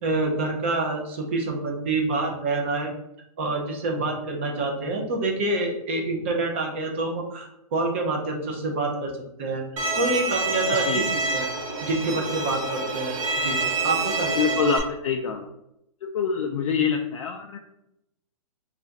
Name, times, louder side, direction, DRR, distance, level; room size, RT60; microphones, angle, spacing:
voice 1, 0.0-2.9 3.4-9.1 9.4-9.6 9.9-11.5 11.8-13.6 13.8-14.3, right 2 dB, 20° right, 1 dB, 0.4 m, -27 dB
Bowed string instrument, 9.8-14.8, right 3 dB, 65° right, 0.9 m, -27 dB
voice 2, 10.7-11.0 14.4-15.5 16.0-17.6, left 6 dB, 60° left, 3 dB, 0.4 m, -26 dB
3.3 x 2.4 x 3.9 m, 0.82 s
hypercardioid pair, 175°, 19 cm